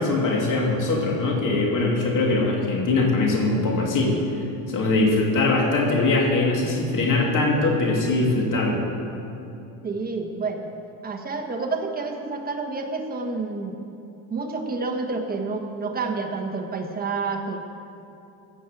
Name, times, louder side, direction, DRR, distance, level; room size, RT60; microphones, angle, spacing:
voice 1, 0.0-4.1 4.7-8.9, left 2 dB, 40° left, -1 dB, 2.9 m, -22 dB
voice 2, 4.9-5.3 9.8-10.7 11.0-13.7 14.3-17.6, right 4 dB, 20° right, 3 dB, 1.4 m, -29 dB
16.0 x 6.5 x 7.4 m, 2.8 s
supercardioid pair, 120°, 47 cm